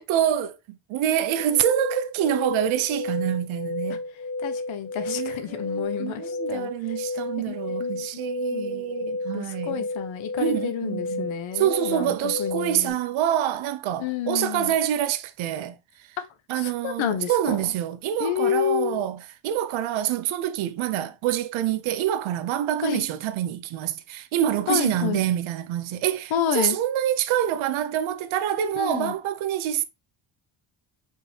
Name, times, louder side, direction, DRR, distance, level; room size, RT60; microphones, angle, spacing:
voice 1, 0.0-4.0 5.1-9.9 10.4-11.3 11.5-15.8 16.5-29.8, right 11 dB, 85° right, 0.6 m, -26 dB
sound 1, 1.4-12.9, left 2 dB, 20° left, 0.4 m, -32 dB
voice 2, 4.4-6.7 7.5-8.1 8.5-8.9 9.3-13.0 14.0-14.7 16.2-16.3 16.5-17.7 18.2-19.0 22.8-23.1 24.7-25.2 26.3-26.8 28.8-29.1, left 9 dB, 80° left, 1.0 m, -29 dB
5.0 x 2.8 x 3.3 m
cardioid pair, 125°, 46 cm